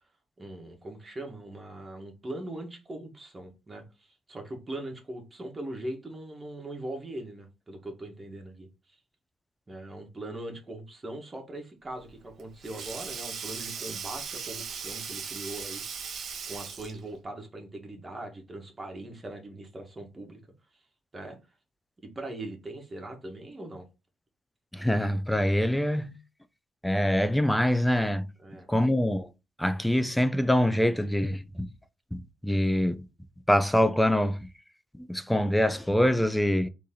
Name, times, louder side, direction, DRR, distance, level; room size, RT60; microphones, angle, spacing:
voice 1, 0.4-9.0 9.7-15.8 16.1-20.4 21.1-21.4 22.0-23.9 28.4-28.7, right 1 dB, 25° right, 1.6 m, -40 dB
Sink (filling or washing), 12.0-17.1, right 6 dB, 60° right, 0.9 m, -38 dB
voice 2, 24.7-26.2 26.8-28.3 28.7-29.3 29.6-31.7 32.1-33.0 33.5-34.5 35.0-36.7, equal, 5° left, 0.5 m, -25 dB
4.2 x 3.2 x 3.8 m
cardioid pair, 90°, 0 cm